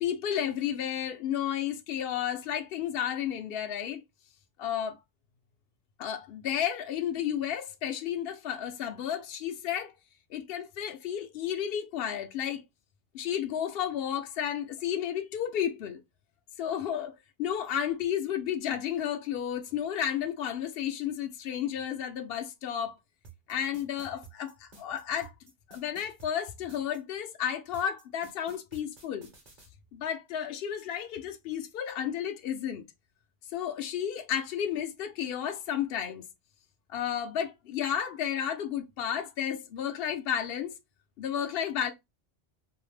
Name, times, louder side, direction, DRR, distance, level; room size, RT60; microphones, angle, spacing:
voice 1, 0.0-4.0 4.6-5.0 6.0-9.9 10.3-12.6 13.1-16.0 16.6-22.9 23.5-25.3 25.7-29.3 29.9-32.8 33.5-36.2 36.9-40.8 41.2-41.9, left 9 dB, 70° left, 0.8 m, -32 dB
sound 1, 23.2-27.0 27.7-29.7, right 4 dB, 50° right, 1.1 m, -52 dB
2.7 x 2.0 x 3.1 m
omnidirectional pair, 1.1 m